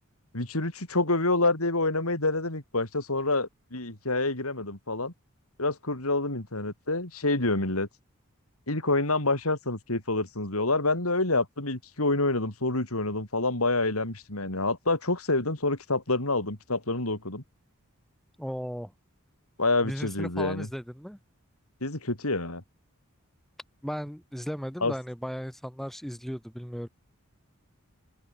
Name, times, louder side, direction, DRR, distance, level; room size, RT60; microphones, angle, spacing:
voice 1, 0.3-5.1 5.6-7.9 8.7-17.4 19.6-20.7 21.8-22.6 24.8-24.9, left 2 dB, 75° left, 4.6 m, -27 dB
voice 2, 18.4-18.9 19.8-21.2 23.8-26.9, equal, ahead, 3.9 m, -36 dB
open air
head